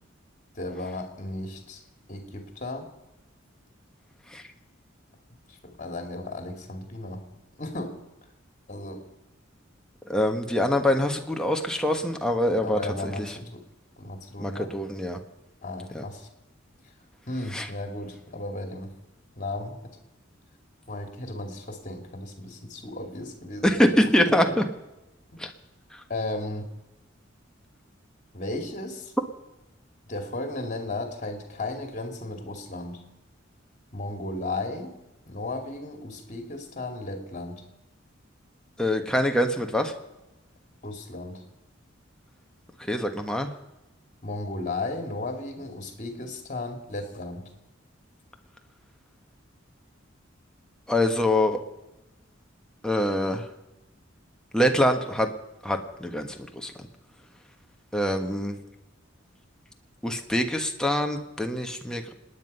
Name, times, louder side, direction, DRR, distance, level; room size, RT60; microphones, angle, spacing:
voice 1, 0.5-1.8 2.1-2.9 5.5-7.3 7.6-8.0 8.7-9.1 12.6-13.6 14.0-14.7 15.6-16.3 17.3-18.9 19.4-20.0 20.9-24.6 26.1-26.7 28.3-29.1 30.0-33.0 33.9-34.9 35.3-37.6 40.8-41.4 44.2-47.5, left 2 dB, 40° left, 5 dB, 2.5 m, -35 dB
voice 2, 10.1-13.3 14.4-15.2 15.9-16.0 17.5-17.7 23.6-24.6 25.4-25.5 38.8-39.9 42.9-43.5 50.9-51.6 52.8-53.5 54.5-55.3 55.6-56.7 57.9-58.5 60.0-62.1, left 1 dB, 5° left, 3 dB, 1.3 m, -24 dB
26.5 x 9.8 x 5.5 m, 0.96 s
head